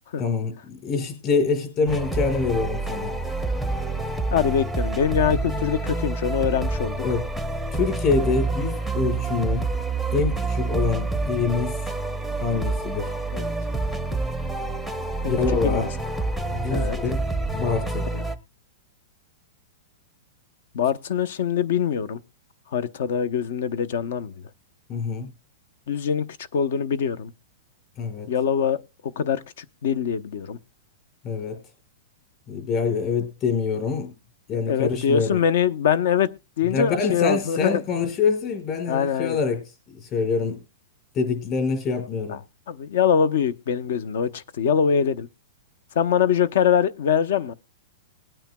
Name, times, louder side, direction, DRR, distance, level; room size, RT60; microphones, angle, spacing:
voice 1, 0.1-3.2 7.0-7.3 7.7-9.7 10.1-11.9 12.4-13.1 15.3-15.9 16.5-17.2 17.5-18.1 24.9-25.3 28.0-28.3 31.2-31.6 32.5-34.1 34.5-35.4 36.7-39.6 39.9-40.6 41.1-42.4, left 5 dB, 30° left, 5.0 m, -25 dB
sound 1, 1.9-18.4, right 3 dB, 5° left, 0.7 m, -27 dB
voice 2, 4.3-7.0 13.3-13.5 15.2-15.4 15.6-15.9 16.7-17.0 18.1-18.2 20.7-22.2 22.7-24.3 25.9-26.3 26.5-27.3 28.3-30.6 34.5-37.8 38.9-39.4 42.3-42.4 42.7-45.3 45.9-47.5, left 7 dB, 65° left, 0.8 m, -23 dB
20.5 x 8.9 x 2.3 m
supercardioid pair, 160°, 0 cm